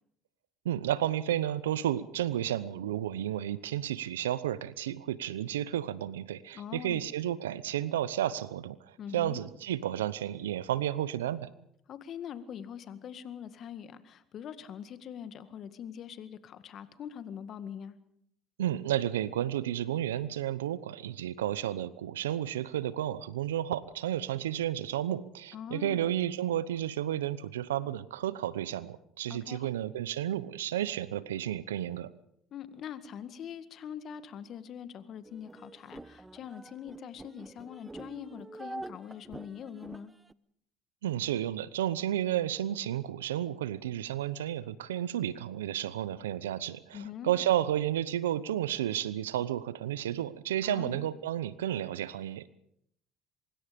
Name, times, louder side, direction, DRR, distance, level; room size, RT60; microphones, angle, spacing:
voice 1, 0.6-11.5 18.6-32.1 41.0-52.5, right 11 dB, 90° right, 18 dB, 0.8 m, -32 dB
voice 2, 6.5-7.0 9.0-9.4 11.9-18.0 25.5-26.0 29.3-29.7 32.5-40.1 46.9-47.3 50.6-51.0, left 8 dB, 55° left, 12 dB, 1.9 m, -43 dB
sound 1, 35.2-40.3, right 2 dB, 15° right, 0.8 m, -46 dB
24.5 x 22.5 x 5.3 m, 0.73 s
hypercardioid pair, 70°, 0 cm